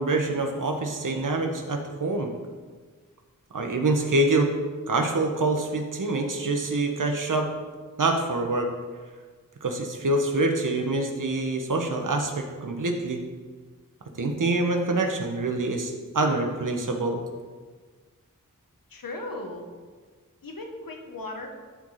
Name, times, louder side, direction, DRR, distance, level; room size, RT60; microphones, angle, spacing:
voice 1, 0.0-2.3 3.5-4.5 4.9-7.5 8.0-8.7 9.6-13.2 14.2-17.2, right 2 dB, 70° right, 3 dB, 1.3 m, -25 dB
voice 2, 18.9-19.6 20.4-21.5, left 2 dB, 90° left, 2 dB, 1.3 m, -37 dB
13.0 x 4.9 x 4.2 m, 1.5 s
wide cardioid pair, 60°, 33 cm